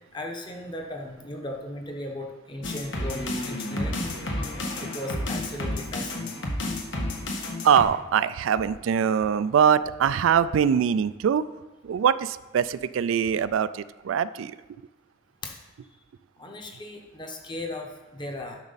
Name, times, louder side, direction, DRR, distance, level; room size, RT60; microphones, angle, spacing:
voice 1, 0.1-4.0 4.8-6.3 15.4-15.5 16.4-18.6, left 1 dB, 25° left, 2 dB, 1.0 m, -37 dB
sound 1, 2.6-7.8, left 1 dB, 70° left, 1.3 m, -31 dB
voice 2, 7.6-11.4 11.8-14.6, right 7 dB, 85° right, 16 dB, 0.3 m, -23 dB
10.5 x 6.4 x 4.0 m, 1.1 s
head